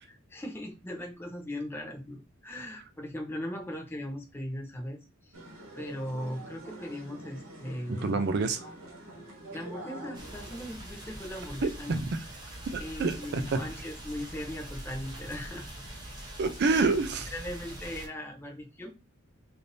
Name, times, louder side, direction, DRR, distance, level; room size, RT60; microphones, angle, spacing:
voice 1, 0.0-5.3 5.7-8.2 9.5-12.0 12.8-15.7 16.7-16.9 17.3-19.0, left 1 dB, 10° left, 0.5 m, -39 dB
sound 1, 5.3-10.7, right 1 dB, 70° right, 1.0 m, -46 dB
voice 2, 7.9-8.7 11.6-12.2 12.7-13.6 16.4-17.3, right 3 dB, 50° right, 0.4 m, -28 dB
sound 2, 10.1-18.1, right 1 dB, 20° right, 0.8 m, -43 dB
3.3 x 2.6 x 2.6 m
head